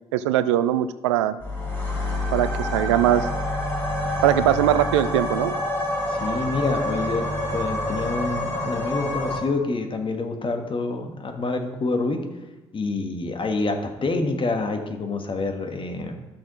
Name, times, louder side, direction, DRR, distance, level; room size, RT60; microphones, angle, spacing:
voice 1, 0.1-1.4 2.3-3.3 4.2-5.5, right 12 dB, 75° right, 14 dB, 0.4 m, -21 dB
sound 1, 1.4-9.4, left 1 dB, 15° left, 3.9 m, -27 dB
voice 2, 6.1-12.2 12.7-16.1, left 3 dB, 35° left, 5 dB, 1.6 m, -27 dB
12.0 x 6.3 x 5.0 m, 1.1 s
figure-of-eight pair, 45°, 15 cm